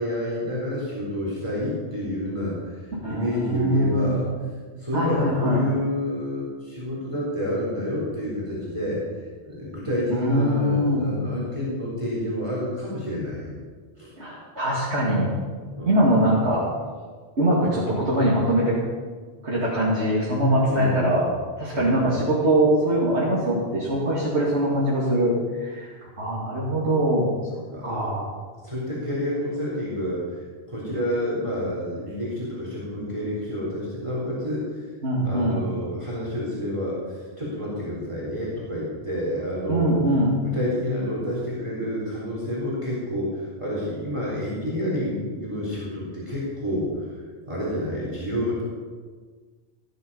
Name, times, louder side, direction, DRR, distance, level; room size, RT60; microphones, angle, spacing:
voice 1, 0.0-4.3 4.8-9.0 9.5-13.5 14.0-14.1 15.7-16.0 20.7-21.3 21.7-22.0 27.7-27.9 28.6-34.8 35.2-39.9 40.5-47.1 47.5-48.6, left 1 dB, 25° right, -5 dB, 4.1 m, -29 dB
voice 2, 3.0-4.2 4.9-5.6 10.1-11.1 14.2-15.3 15.9-16.7 17.4-18.8 19.4-21.3 21.6-27.3 27.8-28.3 35.0-35.6 39.7-40.4, right 1 dB, 75° right, -6 dB, 2.8 m, -22 dB
16.5 x 10.5 x 5.6 m, 1.5 s
omnidirectional pair, 1.2 m